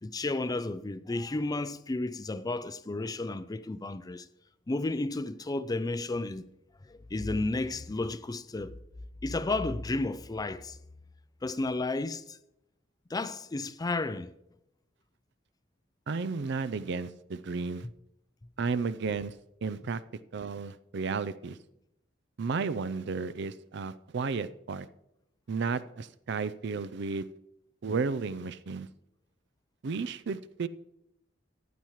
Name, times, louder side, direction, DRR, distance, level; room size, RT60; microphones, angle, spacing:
voice 1, 0.0-4.3 4.7-6.5 6.8-8.8 9.2-10.8 11.4-12.4 13.1-14.3, left 2 dB, 20° left, 0.4 m, -32 dB
voice 2, 16.1-17.9 18.6-19.3 19.6-20.0 20.3-21.6 22.4-24.9 25.5-27.3 27.8-28.9 29.8-30.7, right 4 dB, 65° right, 0.5 m, -33 dB
14.5 x 10.0 x 3.1 m
head